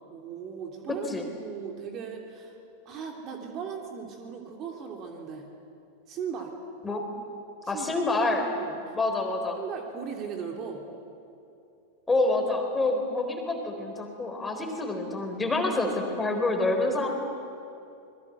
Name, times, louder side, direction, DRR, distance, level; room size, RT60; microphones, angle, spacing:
voice 1, 0.1-1.1 1.4-2.6 2.8-5.5 6.1-6.5 7.6-8.0 8.6-8.8 9.6-10.8, right 7 dB, 35° right, 2 dB, 3.0 m, -38 dB
voice 2, 7.7-8.5 8.9-9.6 12.1-17.2, left 2 dB, 10° left, 3 dB, 4.0 m, -27 dB
27.0 x 21.5 x 8.1 m, 2.7 s
figure-of-eight pair, 90°, 0 cm